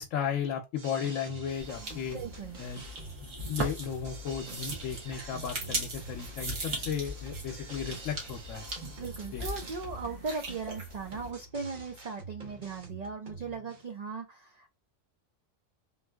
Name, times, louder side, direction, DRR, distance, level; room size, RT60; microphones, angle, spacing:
voice 1, 0.0-2.2 2.6-2.8 3.5-8.7 9.3-9.5, left 8 dB, 80° left, 1.0 m, -35 dB
sound 1, 0.8-13.8, right 3 dB, 40° right, 1.0 m, -47 dB
sound 2, 1.6-11.3, right 1 dB, 70° right, 1.6 m, -39 dB
voice 2, 2.1-2.6 9.0-14.7, right 4 dB, 85° right, 0.3 m, -38 dB
3.7 x 2.6 x 2.2 m
omnidirectional pair, 1.3 m